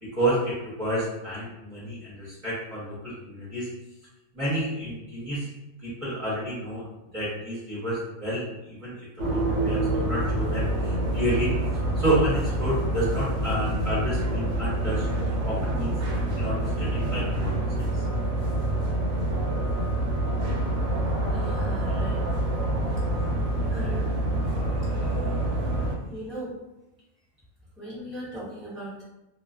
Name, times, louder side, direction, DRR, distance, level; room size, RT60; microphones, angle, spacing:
voice 1, 0.0-3.7 4.3-5.5 5.8-11.5 11.9-15.1 15.4-15.9 16.3-18.0 25.0-25.1, right 1 dB, 30° right, -9 dB, 0.8 m, -30 dB
sound 1, 9.2-25.9, right 1 dB, 65° right, 0.8 m, -26 dB
voice 2, 21.3-22.2 23.7-24.1 26.1-26.6 27.8-29.0, right 1 dB, ahead, -10 dB, 0.4 m, -38 dB
2.4 x 2.3 x 2.4 m, 0.94 s
omnidirectional pair, 1.5 m